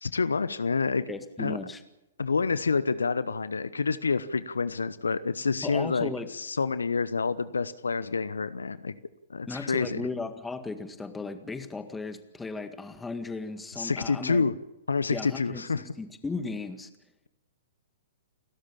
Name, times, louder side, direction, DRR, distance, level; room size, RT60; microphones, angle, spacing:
voice 1, 0.0-1.0 1.4-1.6 2.2-8.9 9.3-10.0 13.8-14.5 14.9-15.8, left 4 dB, 75° left, 16 dB, 0.9 m, -28 dB
voice 2, 1.1-1.8 5.6-6.3 9.5-14.4 15.1-16.9, left 3 dB, 10° left, 9 dB, 1.9 m, -36 dB
29.5 x 13.0 x 8.6 m, 0.93 s
figure-of-eight pair, 115°, 0 cm